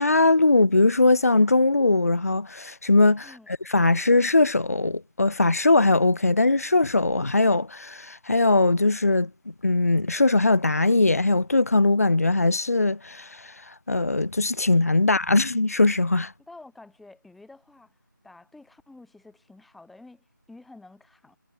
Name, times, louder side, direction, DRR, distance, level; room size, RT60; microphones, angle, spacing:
voice 1, 0.0-3.3 3.7-9.3 9.6-16.3, left 2 dB, 45° left, 0.9 m, -20 dB
voice 2, 16.4-21.4, left 2 dB, ahead, 5.9 m, -50 dB
figure-of-eight pair, 175°, 11 cm